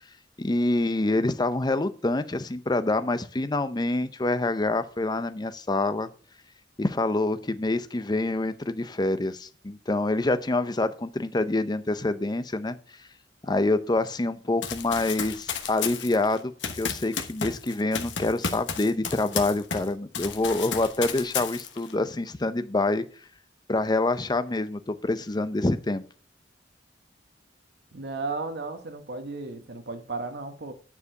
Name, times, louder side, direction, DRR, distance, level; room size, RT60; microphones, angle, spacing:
voice 1, 0.4-6.1 6.8-12.8 13.4-23.0 23.7-26.0, left 2 dB, 25° left, 0.6 m, -26 dB
Run, 14.6-19.9 20.1-21.9, left 6 dB, 80° left, 1.2 m, -33 dB
voice 2, 27.9-30.7, right 3 dB, 65° right, 1.1 m, -34 dB
9.7 x 4.8 x 6.5 m
head